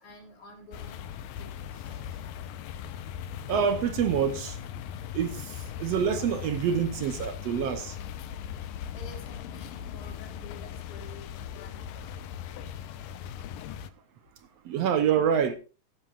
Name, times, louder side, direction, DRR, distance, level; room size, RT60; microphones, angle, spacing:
voice 1, 0.0-1.5 8.9-12.1, left 2 dB, 60° left, 5.4 m, -49 dB
sound 1, 0.7-13.9, left 9 dB, 90° left, 2.5 m, -39 dB
voice 2, 3.5-4.6 5.1-8.0 14.6-15.6, right 7 dB, 70° right, 1.6 m, -26 dB
16.0 x 12.5 x 2.4 m
omnidirectional pair, 3.8 m